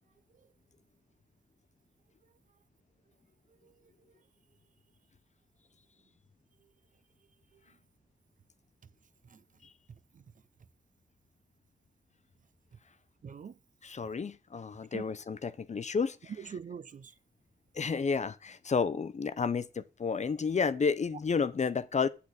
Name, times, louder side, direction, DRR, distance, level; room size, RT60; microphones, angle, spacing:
voice 1, 9.9-10.2 13.2-13.6 14.9-15.0 16.3-17.1, right 7 dB, 50° right, 0.5 m, -44 dB
voice 2, 13.8-16.3 17.7-22.1, left 5 dB, 45° left, 0.7 m, -31 dB
8.6 x 8.1 x 4.1 m
wide cardioid pair, 95°, 17 cm